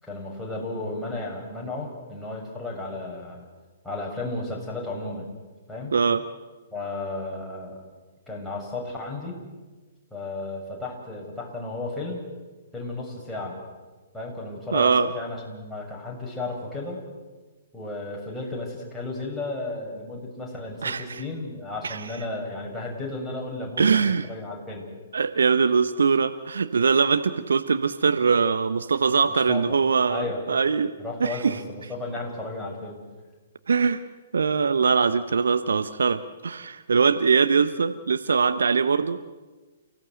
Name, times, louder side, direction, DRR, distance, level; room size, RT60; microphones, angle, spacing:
voice 1, 0.0-3.4 3.8-5.3 5.7-5.9 6.7-7.8 8.3-9.4 10.1-12.3 12.7-13.6 14.1-17.0 17.7-24.9 29.3-29.8 30.1-30.4 31.0-33.0, left 2 dB, ahead, -4 dB, 7.1 m, -34 dB
voice 2, 14.7-15.1 20.8-21.2 21.8-22.1 23.8-24.3 25.1-31.6 33.7-34.0 34.3-39.2, right 5 dB, 65° right, 11 dB, 1.0 m, -22 dB
29.5 x 17.0 x 7.9 m, 1.3 s
figure-of-eight pair, 120°, 0 cm